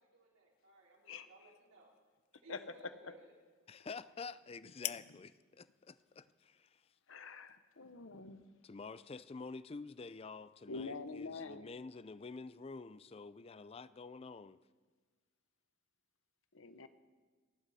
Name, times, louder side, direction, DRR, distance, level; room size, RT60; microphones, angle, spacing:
voice 1, 0.0-1.9 2.4-3.3, right 1 dB, 75° right, 4.1 m, -60 dB
sound 1, 0.5-8.2, left 16 dB, 85° left, 0.5 m, -52 dB
voice 2, 1.1-1.6 2.5-3.1 7.1-8.5 10.7-11.7 16.5-16.9, left 4 dB, 65° left, 1.0 m, -46 dB
voice 3, 3.7-6.8 8.6-14.6, left 4 dB, 25° left, 0.4 m, -49 dB
28.5 x 11.5 x 4.2 m
head